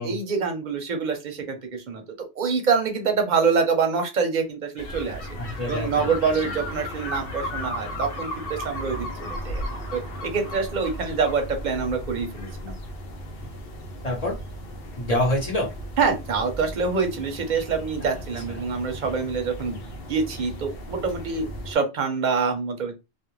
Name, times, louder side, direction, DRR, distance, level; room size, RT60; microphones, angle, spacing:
voice 1, 0.0-2.0 2.4-5.2 5.7-9.6 9.9-12.7 16.0-19.8 20.1-23.0, right 5 dB, 50° right, 5 dB, 0.7 m, -26 dB
sound 1, 4.8-21.7, equal, 65° left, 0.8 m, -35 dB
voice 2, 5.4-6.2 6.4-6.6 14.0-14.4 15.0-15.7 18.0-18.1 18.5-18.6, left 1 dB, 40° left, -1 dB, 1.0 m, -27 dB
2.5 x 2.1 x 3.0 m, 0.25 s
omnidirectional pair, 1.1 m